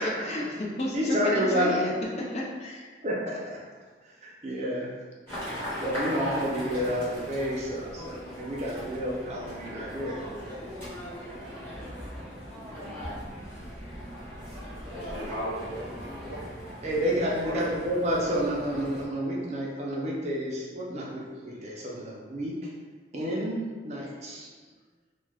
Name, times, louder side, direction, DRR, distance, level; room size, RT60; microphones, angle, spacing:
voice 1, 0.0-2.9, left 1 dB, 35° left, -4 dB, 0.5 m, -32 dB
voice 2, 0.9-1.8 3.0-3.6 4.0-4.9 5.8-10.2 12.6-13.0 16.8-22.7 23.1-24.5, equal, 35° right, -4 dB, 0.5 m, -30 dB
sound 1, 5.3-19.1, equal, 15° left, 1.2 m, -39 dB
voice 3, 14.8-16.5 17.0-17.8, right 1 dB, 70° right, -6 dB, 0.8 m, -38 dB
2.3 x 2.3 x 3.3 m, 1.4 s
head